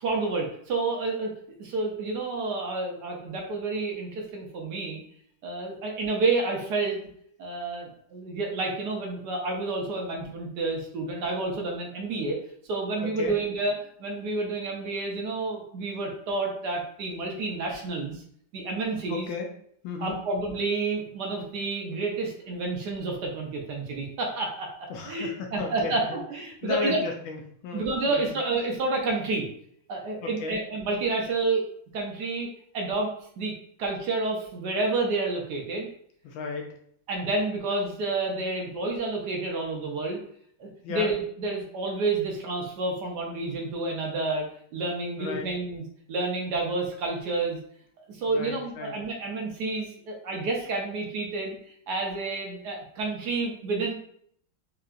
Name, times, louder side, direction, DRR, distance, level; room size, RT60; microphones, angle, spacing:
voice 1, 0.0-5.0 5.4-7.0 7.4-12.4 12.6-13.7 14.0-18.2 18.5-19.3 20.0-27.0 27.7-29.5 29.9-31.6 31.9-32.5 32.7-33.1 33.4-33.5 33.8-35.9 37.1-40.2 40.6-44.4 44.7-47.6 48.1-51.6 51.9-53.9, right 3 dB, 65° right, 0 dB, 1.1 m, -29 dB
voice 2, 19.1-19.5 19.8-20.2 24.9-26.2 26.6-28.4 30.2-30.6 36.2-36.8 40.8-41.1 45.2-45.5 48.3-48.9, left 4 dB, 75° left, 2 dB, 1.3 m, -34 dB
4.6 x 2.9 x 2.4 m, 0.65 s
omnidirectional pair, 2.4 m